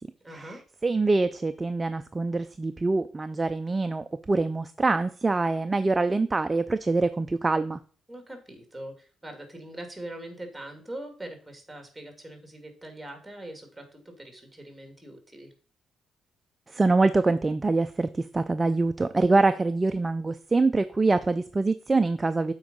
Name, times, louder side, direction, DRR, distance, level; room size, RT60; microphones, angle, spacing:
voice 1, 0.2-0.6 8.1-15.5, right 1 dB, 5° right, 5 dB, 2.3 m, -42 dB
voice 2, 0.8-7.8 16.7-22.5, right 3 dB, 20° right, 10 dB, 0.4 m, -24 dB
7.7 x 4.6 x 5.4 m, 0.42 s
cardioid pair, 90°, 0 cm